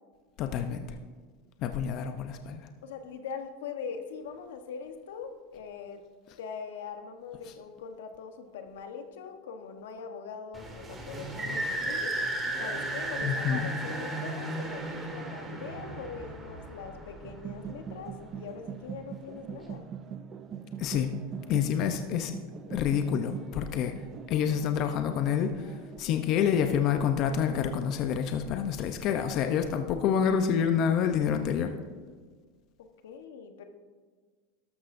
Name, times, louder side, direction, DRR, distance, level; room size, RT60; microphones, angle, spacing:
voice 1, 0.4-0.9 1.6-2.6 13.2-13.7 20.8-21.1 21.5-22.3 22.7-23.9 24.3-31.7, left 8 dB, 45° left, 7 dB, 0.7 m, -28 dB
voice 2, 2.8-6.0 6.4-12.1 12.6-19.8 32.8-33.6, left 6 dB, 85° left, 6 dB, 1.1 m, -42 dB
sound 1, 10.5-17.9, right 1 dB, 15° right, 1.8 m, -35 dB
sound 2, 17.2-26.3, right 7 dB, 30° right, 0.6 m, -42 dB
13.0 x 12.0 x 2.6 m, 1.5 s
supercardioid pair, 135°, 0 cm